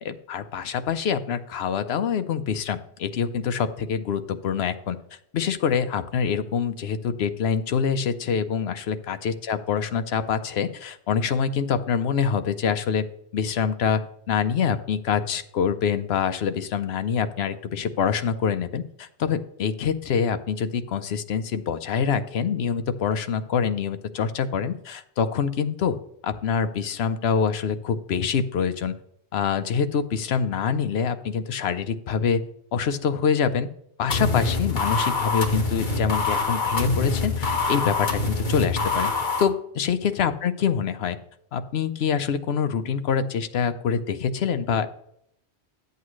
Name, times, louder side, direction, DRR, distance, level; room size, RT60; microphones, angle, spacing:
voice 1, 0.0-5.0 5.3-13.0 13.3-14.0 14.3-26.0 26.2-29.0 29.3-32.4 32.7-33.7 34.0-39.1 39.4-41.2 41.5-44.9, left 7 dB, 70° left, 10 dB, 0.9 m, -25 dB
sound 1, 34.1-39.4, left 3 dB, 45° left, 1.4 m, -25 dB
11.0 x 8.1 x 3.1 m, 0.72 s
omnidirectional pair, 1.1 m